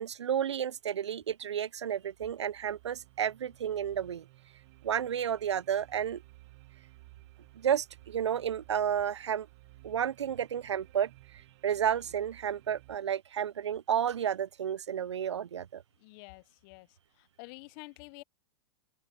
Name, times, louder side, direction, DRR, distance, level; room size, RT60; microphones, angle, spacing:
voice 1, 0.0-4.3 4.8-6.2 7.6-9.5 9.8-11.1 11.6-15.8, right 9 dB, 90° right, 0.5 m, -31 dB
sound 1, 1.6-13.0, right 21 dB, 55° right, 1.6 m, -57 dB
voice 2, 16.0-16.9 17.2-18.2, left 28 dB, 50° left, 0.8 m, -49 dB
open air
hypercardioid pair, 110°, 14 cm